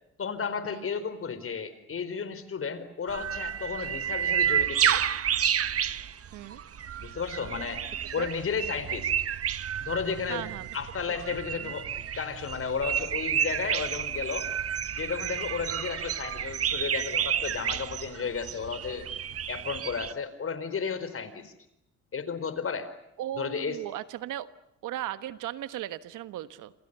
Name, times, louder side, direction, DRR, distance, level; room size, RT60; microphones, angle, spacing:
voice 1, 0.2-5.0 7.0-7.8 8.1-9.1 9.8-10.5 10.7-14.5 15.0-19.1 19.5-21.5 22.1-22.9 23.4-23.8, left 6 dB, 45° left, 12 dB, 4.6 m, -33 dB
sound 1, 3.1-20.1, right 9 dB, 50° right, 1.2 m, -30 dB
voice 2, 10.3-10.7 11.1-11.7 23.2-24.5 24.8-26.7, right 13 dB, 90° right, 13 dB, 1.4 m, -37 dB
28.5 x 27.5 x 6.9 m, 0.83 s
cardioid pair, 90°, 30 cm